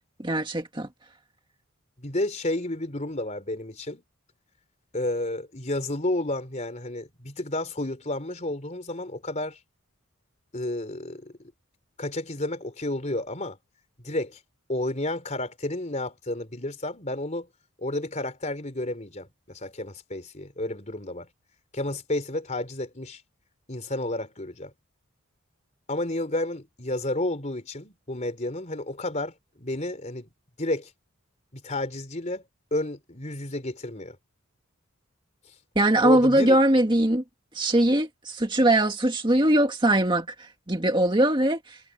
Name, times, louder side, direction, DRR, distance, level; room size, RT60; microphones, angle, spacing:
voice 1, 0.2-0.9 35.8-37.2 37.5-41.8, right 1 dB, 20° right, 1.9 m, -21 dB
voice 2, 2.0-4.0 4.9-9.6 10.5-11.5 12.0-13.6 14.0-14.4 14.7-17.5 17.8-21.3 21.7-23.2 23.7-24.7 25.9-30.3 30.6-30.9 31.5-32.4 32.7-34.2 36.0-36.6, left 1 dB, 35° left, 3.8 m, -31 dB
head